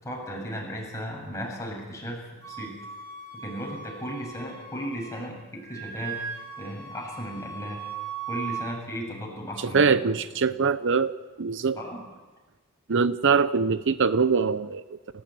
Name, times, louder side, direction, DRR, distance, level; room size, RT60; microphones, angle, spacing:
voice 1, 0.0-2.8 3.3-6.2 6.6-7.8 8.3-9.8 11.8-12.0, equal, 15° left, -1 dB, 7.2 m, -35 dB
Wind instrument woodwind instrument, 2.4-5.3 5.6-8.7, right 6 dB, 75° right, 3.8 m, -38 dB
voice 2, 9.6-11.8 12.9-15.0, right 5 dB, 55° right, 14 dB, 0.7 m, -23 dB
30.0 x 15.5 x 9.3 m, 1.2 s
head